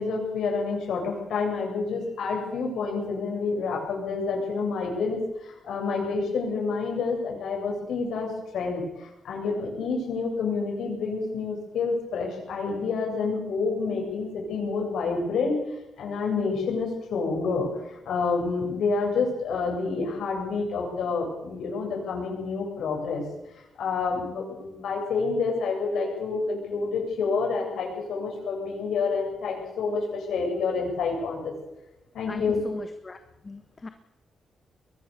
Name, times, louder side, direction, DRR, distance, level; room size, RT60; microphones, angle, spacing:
voice 1, 0.0-15.6 16.0-23.2 23.5-31.5 32.1-32.6, left 4 dB, 85° left, 0 dB, 7.5 m, -28 dB
voice 2, 32.3-33.9, left 3 dB, 25° left, 8 dB, 1.4 m, -38 dB
22.5 x 18.5 x 6.8 m, 0.91 s
cardioid pair, 125°, 0 cm